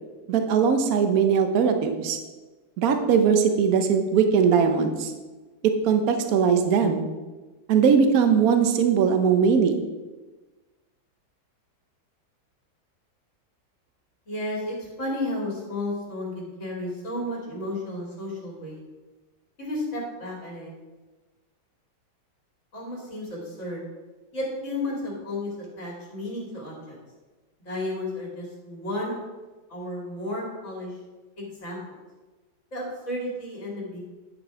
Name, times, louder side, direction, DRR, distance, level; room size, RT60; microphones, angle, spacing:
voice 1, 0.3-2.2 2.8-5.1 5.6-7.0 7.7-9.8, right 6 dB, 60° right, 7 dB, 1.2 m, -20 dB
voice 2, 14.3-18.8 19.6-20.7 22.7-23.8 24.3-27.0 27.6-29.2 29.7-30.9 31.4-31.8 32.7-34.0, left 1 dB, 40° left, -3 dB, 2.9 m, -32 dB
10.5 x 5.2 x 5.0 m, 1.2 s
omnidirectional pair, 1.9 m